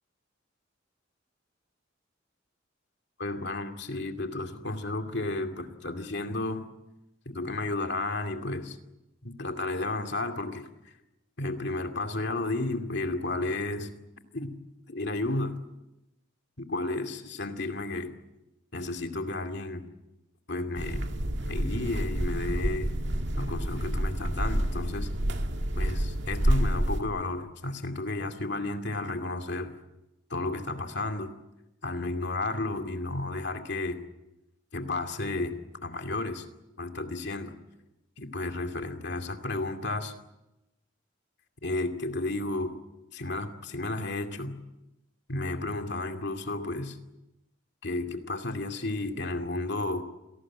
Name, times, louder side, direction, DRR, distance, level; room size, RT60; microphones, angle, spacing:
voice 1, 3.2-6.7 7.3-8.8 9.2-10.9 11.4-13.9 14.3-14.5 14.9-15.6 16.6-18.2 18.7-19.9 20.5-21.1 21.4-23.0 23.4-25.1 25.7-29.7 30.3-31.3 31.8-34.0 34.7-36.5 36.8-37.5 38.2-40.1 41.6-42.7 43.1-44.5 45.3-47.0 47.8-50.0, left 2 dB, 60° left, 6 dB, 2.5 m, -32 dB
sound 1, 20.7-27.0, right 1 dB, 60° right, 2.1 m, -28 dB
27.5 x 18.5 x 8.9 m, 0.96 s
head